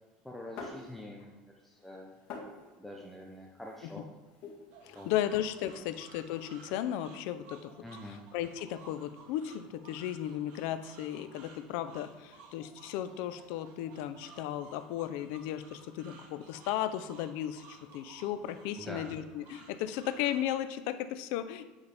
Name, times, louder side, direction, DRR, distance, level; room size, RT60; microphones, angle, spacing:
voice 1, 0.2-1.4 1.6-2.2 2.8-4.1 5.0-5.1 5.8-5.9 7.8-8.2 18.8-19.0, left 1 dB, 5° left, 0 dB, 0.6 m, -45 dB
sound 1, 0.6-1.4 1.7-5.4, left 4 dB, 55° left, 2.0 m, -48 dB
sound 2, 4.7-20.6, right 4 dB, 60° right, 1.3 m, -56 dB
voice 2, 4.8-21.6, left 11 dB, 70° left, 12 dB, 0.5 m, -35 dB
9.6 x 4.1 x 3.4 m, 1.3 s
supercardioid pair, 135°, 3 cm